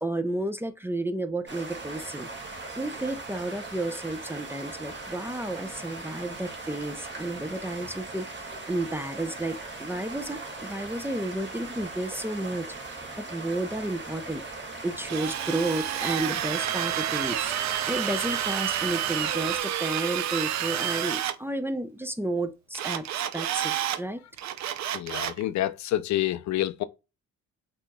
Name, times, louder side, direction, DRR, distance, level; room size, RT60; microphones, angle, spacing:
voice 1, 0.0-2.3 2.8-14.4 14.8-23.1 23.3-24.2, right 1 dB, 10° right, 0.5 m, -32 dB
sound 1, 1.5-19.6, right 3 dB, 35° right, 1.7 m, -39 dB
Drill, 15.0-21.4 22.7-24.0 24.4-25.4, right 11 dB, 65° right, 0.5 m, -29 dB
voice 2, 24.9-26.8, left 14 dB, 70° left, 0.5 m, -28 dB
6.0 x 3.0 x 2.2 m
cardioid pair, 90°, 30 cm